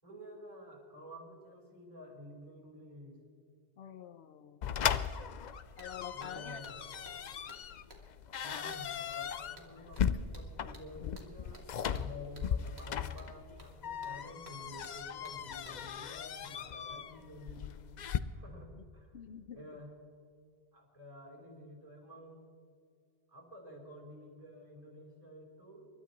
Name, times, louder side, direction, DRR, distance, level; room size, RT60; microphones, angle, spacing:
voice 1, 0.0-3.2 6.1-6.8 8.4-17.8 18.3-19.2 19.5-19.9 20.7-22.5 23.3-25.9, left 1 dB, 35° right, -3 dB, 4.8 m, -51 dB
voice 2, 3.8-4.6 5.8-6.6 18.8-18.9 19.1-19.8, left 8 dB, 80° left, 12 dB, 1.0 m, -47 dB
sound 1, 4.6-18.2, left 8 dB, 55° left, 0.6 m, -38 dB
sound 2, 5.4-5.5 5.8-16.1, right 2 dB, 80° right, 2.3 m, -59 dB
28.5 x 13.0 x 3.1 m, 2.3 s
omnidirectional pair, 1.1 m